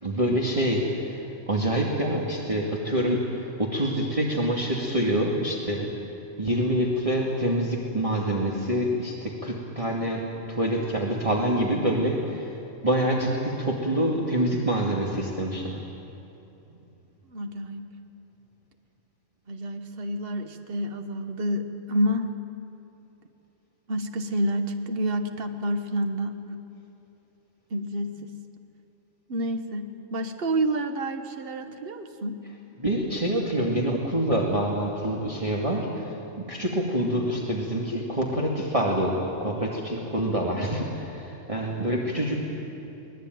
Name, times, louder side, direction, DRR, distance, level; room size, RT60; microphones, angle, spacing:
voice 1, 0.0-5.9 6.4-10.2 10.5-12.5 12.8-15.8 32.8-42.4, right 1 dB, 25° right, -3 dB, 2.4 m, -26 dB
voice 2, 17.3-17.9 19.5-22.3 23.9-26.6 27.7-28.3 29.3-32.4, right 1 dB, 50° right, 7 dB, 1.5 m, -29 dB
24.0 x 19.5 x 9.3 m, 2.9 s
omnidirectional pair, 1.3 m